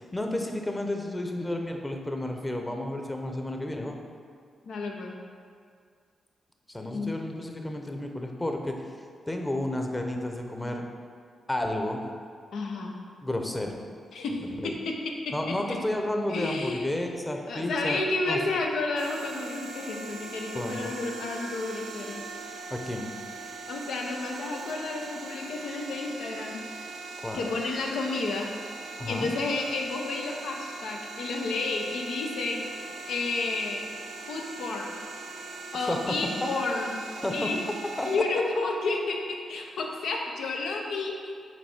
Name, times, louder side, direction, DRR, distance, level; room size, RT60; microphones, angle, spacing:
voice 1, 0.0-4.0 6.7-8.8 9.3-10.9 11.5-12.0 13.2-13.8 14.3-14.7 15.3-18.0 18.3-18.4 20.5-20.9 22.7-23.1 27.2-27.4 29.0-29.3 35.8-36.1 36.4-36.5 37.2-37.5 38.0-38.1, left 1 dB, 20° left, 3 dB, 0.9 m, -31 dB
voice 2, 4.6-5.2 6.9-7.2 12.5-12.9 14.1-15.0 15.2-15.3 16.3-17.0 17.5-22.2 23.7-26.6 27.3-33.9 34.2-34.9 35.7-37.0 37.3-37.6 38.0-41.3, left 3 dB, 75° left, 1 dB, 0.7 m, -31 dB
sound 1, 19.0-38.2, right 3 dB, 80° right, 0.7 m, -41 dB
6.1 x 4.3 x 4.4 m, 2.2 s
supercardioid pair, 40°, 0 cm